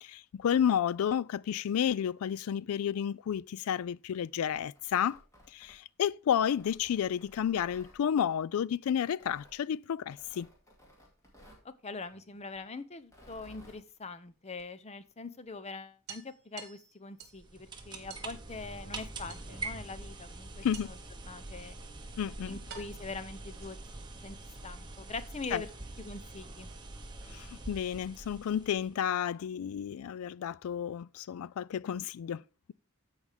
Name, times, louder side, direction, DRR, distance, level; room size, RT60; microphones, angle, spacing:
voice 1, 0.0-5.2 5.5-10.5 20.6-20.9 22.2-22.6 25.5-25.6 27.3-32.4, left 9 dB, 70° left, 0.3 m, -31 dB
Tearing, 4.2-6.0 6.5-8.0 9.1-9.6 10.1-11.7 13.0-13.8, equal, 15° left, 2.3 m, -57 dB
voice 2, 11.6-21.0 21.3-21.8 22.4-23.8 24.2-24.4 24.6-25.7 26.0-26.7, left 3 dB, 30° left, 0.6 m, -43 dB
sound 1, 12.1-13.1 14.6-14.7 15.1-15.2 15.5-15.6 16.1-17.5 18.1-18.3 19.3-19.8 20.7-21.2 22.0-22.1 22.7-24.0, right 7 dB, 45° right, 1.6 m, -50 dB
sound 2, 17.2-29.0, right 2 dB, 20° right, 1.1 m, -45 dB
14.5 x 4.9 x 3.4 m
head